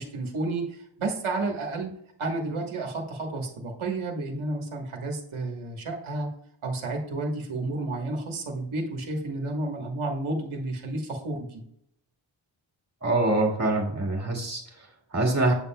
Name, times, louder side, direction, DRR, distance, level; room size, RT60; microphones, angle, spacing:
voice 1, 0.0-1.9 2.2-6.3 6.6-11.6, right 2 dB, 80° right, 1 dB, 1.3 m, -31 dB
voice 2, 13.0-15.5, right 2 dB, 35° right, 0 dB, 1.9 m, -25 dB
7.8 x 7.2 x 2.2 m, 0.71 s
wide cardioid pair, 120°, 48 cm